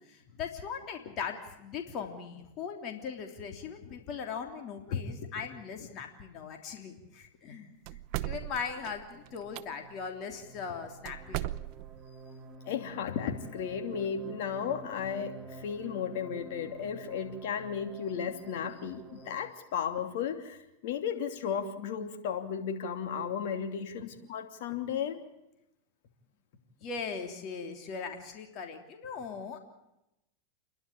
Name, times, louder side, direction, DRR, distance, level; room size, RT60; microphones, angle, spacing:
voice 1, 0.0-7.7 8.2-11.6 26.8-29.6, left 6 dB, 45° left, 3 dB, 3.2 m, -39 dB
voice 2, 4.9-5.5 12.7-25.2, left 7 dB, 65° left, 6 dB, 2.8 m, -34 dB
sound 1, 7.8-9.6 11.0-12.1, right 16 dB, 55° right, 0.8 m, -37 dB
sound 2, 8.7-19.5, right 3 dB, 5° right, 2.6 m, -50 dB
29.5 x 11.5 x 8.7 m, 0.89 s
hypercardioid pair, 115°, 0 cm